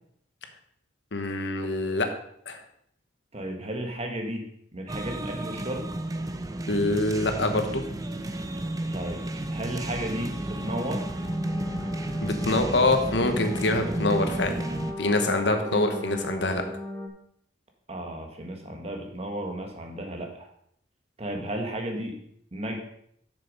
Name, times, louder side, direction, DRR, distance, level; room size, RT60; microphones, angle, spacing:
voice 1, 1.1-2.1 2.5-2.6 6.7-7.8 12.2-14.6 15.0-16.6, left 2 dB, 75° left, 6 dB, 1.2 m, -25 dB
voice 2, 3.3-4.4 4.7-5.9 8.9-9.2 9.5-11.0 15.5-15.8 17.9-20.5 21.2-22.1 22.5-22.8, right 1 dB, 35° right, 3 dB, 1.5 m, -34 dB
sound 1, 4.9-14.9, right 1 dB, 20° right, 0.6 m, -32 dB
sound 2, 9.9-17.1, left 1 dB, 15° left, 0.9 m, -37 dB
6.8 x 6.7 x 5.3 m, 0.69 s
head